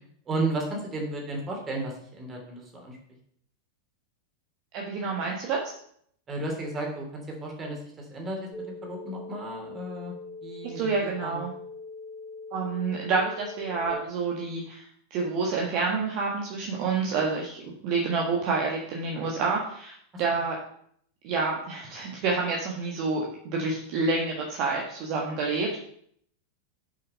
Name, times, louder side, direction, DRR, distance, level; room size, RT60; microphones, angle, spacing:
voice 1, 0.3-3.0 6.3-7.8 8.1-8.4 8.8-10.1 10.4-10.9 11.2-11.4 20.1-20.2, right 2 dB, 20° right, 1 dB, 3.0 m, -33 dB
voice 2, 4.7-5.6 10.6-11.5 12.5-14.8 15.1-20.6 21.2-25.8, right 4 dB, 40° right, -1 dB, 1.6 m, -28 dB
sound 1, 8.5-13.9, left 3 dB, 20° left, 2.0 m, -42 dB
7.5 x 5.9 x 5.5 m, 0.66 s
figure-of-eight pair, 90°, 0 cm